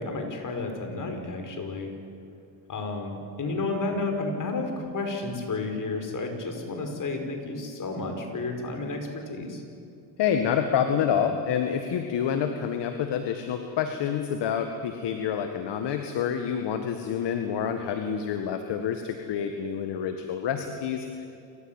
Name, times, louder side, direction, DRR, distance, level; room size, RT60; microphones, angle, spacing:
voice 1, 0.0-1.9 2.7-9.6, left 3 dB, 40° left, 4 dB, 5.5 m, -31 dB
voice 2, 10.2-21.3, left 8 dB, 60° left, 6 dB, 1.8 m, -28 dB
28.0 x 15.0 x 9.0 m, 2.5 s
supercardioid pair, 85°, 47 cm